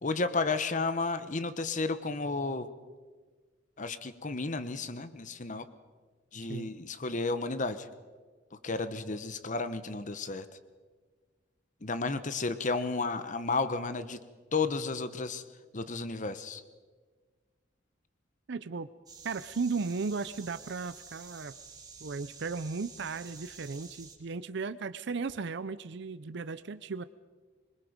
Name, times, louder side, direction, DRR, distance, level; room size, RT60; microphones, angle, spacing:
voice 1, 0.0-2.7 3.8-5.7 6.3-7.9 8.6-10.5 11.8-14.2 14.5-15.4 15.7-16.6, left 3 dB, 40° left, 12 dB, 1.1 m, -32 dB
voice 2, 18.5-18.9 19.2-21.5 22.0-27.0, right 4 dB, 60° right, 13 dB, 0.6 m, -36 dB
sound 1, 19.1-24.2, right 5 dB, 20° right, 2.5 m, -50 dB
25.5 x 22.0 x 5.2 m, 1.4 s
head